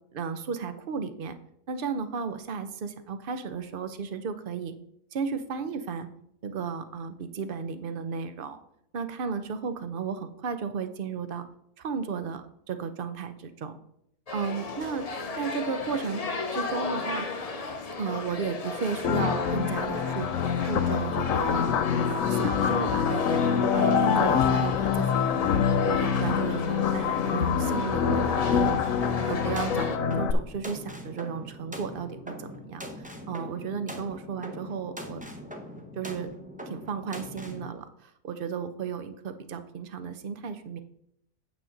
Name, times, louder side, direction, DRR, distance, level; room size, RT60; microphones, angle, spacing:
voice 1, 0.1-1.3 1.7-4.7 5.1-6.1 6.4-8.6 8.9-11.4 11.8-13.8 14.3-15.1 15.3-16.2 16.5-17.3 18.0-20.3 20.7-21.7 22.1-35.2 36.0-36.3 36.7-40.8, right 6 dB, 50° right, 10 dB, 0.7 m, -34 dB
sound 1, 14.3-30.0, left 3 dB, 35° left, 0.6 m, -35 dB
sound 2, 19.0-30.3, left 7 dB, 65° left, 1.0 m, -25 dB
sound 3, 29.0-37.7, equal, 10° right, 0.6 m, -42 dB
8.9 x 7.1 x 4.0 m, 0.73 s
omnidirectional pair, 1.6 m